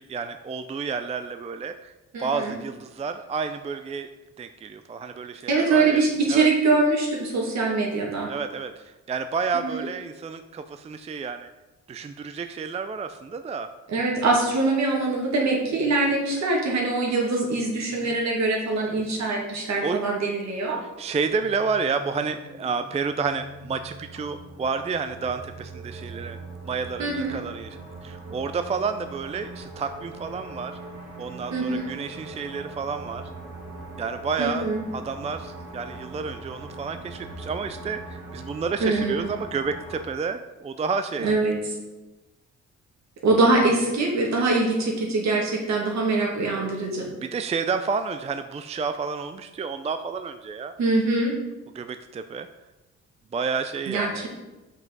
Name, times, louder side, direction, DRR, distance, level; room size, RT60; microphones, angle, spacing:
voice 1, 0.0-1.9 2.2-4.1 4.4-6.0 6.3-6.5 8.3-11.5 11.9-13.7 18.0-18.2 19.8-20.0 21.0-26.4 26.7-27.8 28.0-30.8 31.2-33.3 34.0-41.3 47.2-50.7 51.7-52.5 53.3-54.3, right 5 dB, 20° right, 9 dB, 0.4 m, -30 dB
voice 2, 2.1-2.6 5.5-8.3 9.6-9.8 13.9-20.8 27.0-27.4 31.5-31.9 34.4-34.8 38.8-39.3 41.2-41.7 43.2-47.1 50.8-51.4 53.9-54.3, right 3 dB, 65° right, -1 dB, 2.3 m, -23 dB
sound 1, 21.1-40.0, right 2 dB, 85° right, 2.5 m, -41 dB
6.0 x 5.5 x 5.3 m, 1.1 s
cardioid pair, 90°, 30 cm